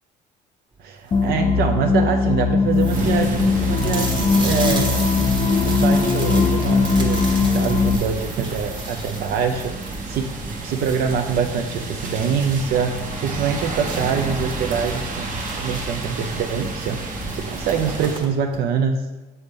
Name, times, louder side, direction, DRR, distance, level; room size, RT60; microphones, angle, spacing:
voice 1, 0.8-5.3 5.6-10.3 10.6-17.0 17.3-19.1, right 6 dB, 70° right, 4 dB, 0.5 m, -25 dB
sound 1, 0.9-1.4 2.0-2.1 2.3-2.4 2.7-12.3 12.6-12.7 13.1-13.2 13.9-16.1 17.0-17.2 17.4-18.6, right 2 dB, 25° right, 1.1 m, -34 dB
sound 2, 1.1-8.0, left 4 dB, 30° left, 0.5 m, -20 dB
sound 3, 2.9-18.2, right 2 dB, 50° right, 1.1 m, -30 dB
6.9 x 4.0 x 3.5 m, 1.1 s
cardioid pair, 110°, 17 cm